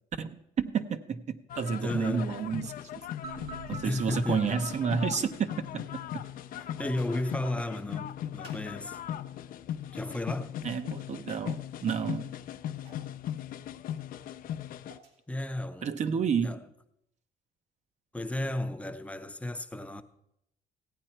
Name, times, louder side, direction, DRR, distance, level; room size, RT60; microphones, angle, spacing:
voice 1, 0.2-2.7 3.7-5.9 10.6-12.3 15.8-16.6, right 6 dB, 45° right, 0.7 m, -30 dB
sound 1, 1.5-15.0, left 10 dB, 55° left, 0.5 m, -39 dB
voice 2, 1.8-2.4 3.8-4.7 6.8-9.0 9.9-10.5 15.3-15.9 16.4-16.7 18.1-20.0, left 1 dB, 10° left, 0.7 m, -34 dB
sound 2, 2.3-2.8 3.7-3.8 4.3-4.8 5.8-5.9 6.5-6.8 8.4-9.1 9.3-9.8 10.9-11.1 12.8-13.1 14.5-15.2, right 3 dB, 80° right, 2.4 m, -57 dB
sound 3, 3.2-6.3, right 5 dB, 60° right, 1.4 m, -47 dB
15.5 x 9.0 x 4.4 m
cardioid pair, 110°, 17 cm